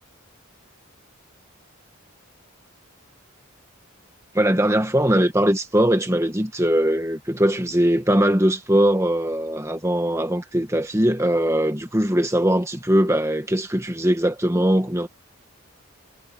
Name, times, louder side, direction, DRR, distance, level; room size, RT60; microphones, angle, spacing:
voice 1, 4.3-15.1, right 1 dB, 15° right, 1.5 m, -21 dB
head